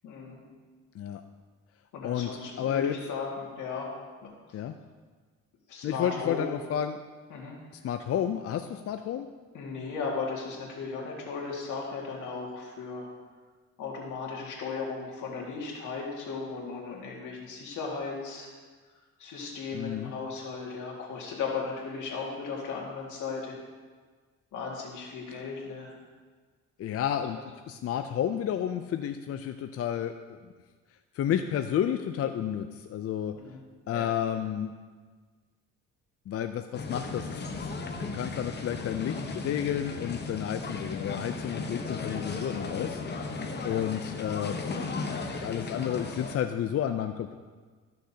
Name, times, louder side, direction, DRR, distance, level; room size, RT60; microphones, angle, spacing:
voice 1, 0.0-0.4 1.9-3.9 5.7-6.5 7.3-7.6 9.5-13.1 13.8-18.5 19.2-23.6 24.5-25.9 27.3-27.4 33.3-33.6 33.9-34.1 43.4-43.7, left 4 dB, 80° left, -2 dB, 2.1 m, -36 dB
voice 2, 2.6-2.9 4.5-4.7 5.8-7.0 7.8-9.3 19.7-20.1 26.8-27.4 27.7-30.4 31.1-33.3 33.9-34.7 36.3-37.7 38.1-44.6 45.0-47.4, left 10 dB, 50° left, 8 dB, 0.4 m, -31 dB
sound 1, 36.7-46.4, left 3 dB, 35° left, 0.9 m, -36 dB
13.5 x 6.5 x 2.8 m, 1.5 s
cardioid pair, 90°, 30 cm